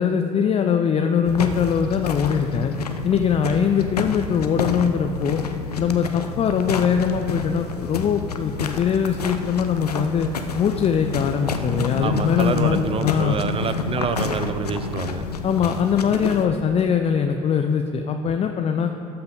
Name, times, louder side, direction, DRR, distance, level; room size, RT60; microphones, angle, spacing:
voice 1, 0.0-2.7 3.0-5.4 5.8-10.3 10.6-13.4 15.4-18.9, left 7 dB, 30° left, 6 dB, 0.5 m, -22 dB
sound 1, 1.2-16.5, left 5 dB, 85° left, 0.5 m, -29 dB
voice 2, 12.0-15.2, right 6 dB, 30° right, 11 dB, 0.6 m, -27 dB
12.5 x 5.8 x 5.2 m, 2.5 s
figure-of-eight pair, 55°, 19 cm